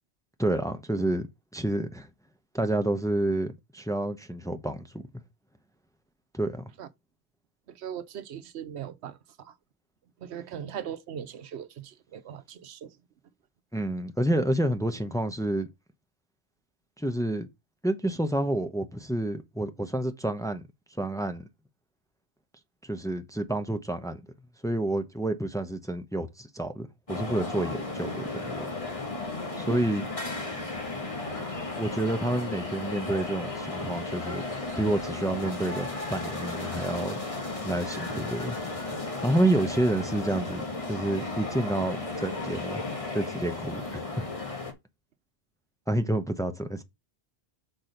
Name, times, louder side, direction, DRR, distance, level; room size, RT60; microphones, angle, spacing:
voice 1, 0.4-1.3 1.5-2.1 2.5-5.1 6.3-6.7 13.7-15.7 17.0-17.5 17.8-20.6 21.0-21.5 22.8-24.2 24.6-28.7 29.6-30.1 31.8-34.4 34.8-37.2 37.6-38.5 39.2-42.8 43.1-44.3 45.9-46.8, right 1 dB, 5° left, 0.8 m, -29 dB
voice 2, 7.8-9.5 10.2-12.9 29.7-29.8 30.6-30.7, right 9 dB, 85° right, 1.0 m, -39 dB
sound 1, 27.1-44.7, left 2 dB, 35° left, 1.5 m, -34 dB
6.2 x 4.4 x 5.2 m
omnidirectional pair, 1.1 m